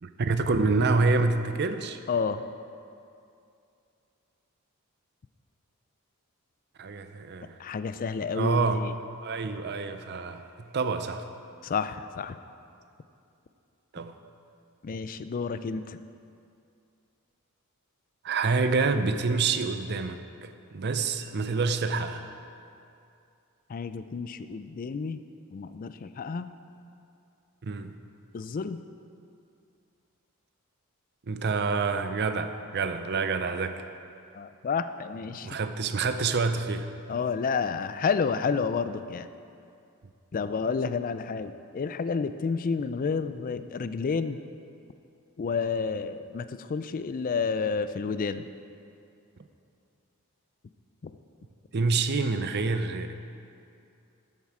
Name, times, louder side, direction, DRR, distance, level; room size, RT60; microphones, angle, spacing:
voice 1, 0.0-2.0 6.8-7.6 8.3-8.8 9.2-10.4 10.7-11.2 13.9-14.1 18.2-22.2 27.6-27.9 31.3-33.8 35.4-36.9 51.7-53.1, right 4 dB, 50° right, 9 dB, 0.6 m, -27 dB
voice 2, 2.1-2.4 7.6-8.9 11.6-12.4 14.8-16.0 23.7-25.2 25.5-26.5 28.3-28.8 34.3-35.5 37.1-39.3 40.3-44.4 45.4-48.4 51.0-51.1, left 5 dB, 40° left, 12 dB, 0.3 m, -30 dB
13.0 x 7.4 x 4.9 m, 2.6 s
head